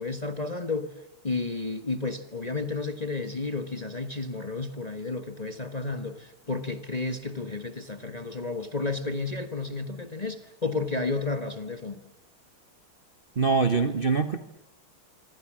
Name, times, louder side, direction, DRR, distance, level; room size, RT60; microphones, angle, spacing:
voice 1, 0.0-12.1, left 3 dB, 20° left, 1.3 m, -32 dB
voice 2, 13.4-14.4, right 4 dB, 35° right, 1.0 m, -23 dB
26.0 x 25.5 x 7.6 m
omnidirectional pair, 2.3 m